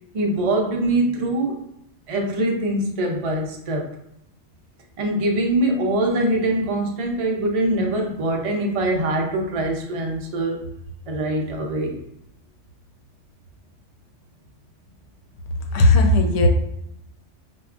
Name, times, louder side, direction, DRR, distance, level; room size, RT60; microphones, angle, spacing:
voice 1, 0.1-1.6 2.1-3.9 5.0-10.6 11.1-12.0, right 1 dB, 55° right, 1 dB, 0.4 m, -23 dB
voice 2, 15.7-16.5, left 2 dB, 90° left, 3 dB, 1.0 m, -15 dB
4.5 x 2.1 x 2.4 m, 0.79 s
omnidirectional pair, 1.2 m